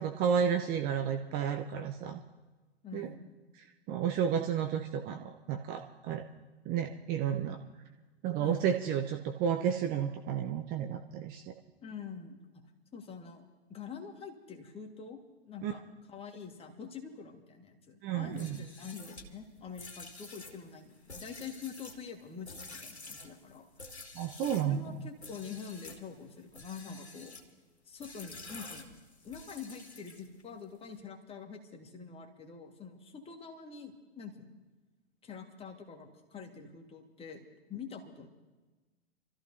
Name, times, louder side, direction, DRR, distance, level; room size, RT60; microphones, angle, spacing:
voice 1, 0.0-2.2 2.9-3.1 3.6-6.2 6.6-7.6 8.2-11.5 15.6-15.7 18.0-18.7 24.1-25.1, right 8 dB, 30° right, 6 dB, 0.7 m, -32 dB
voice 2, 2.8-3.3 8.4-8.7 11.8-12.6 12.9-13.4 13.7-15.2 15.4-15.8 16.1-24.0 24.5-27.4 27.9-28.9 29.2-34.6 35.2-38.3, left 6 dB, 20° left, 4 dB, 1.7 m, -46 dB
sound 1, 18.3-24.7 25.2-26.0 26.5-27.5 28.0-30.4, left 3 dB, 85° left, 1.7 m, -49 dB
29.0 x 14.0 x 2.7 m, 1.3 s
figure-of-eight pair, 100°, 32 cm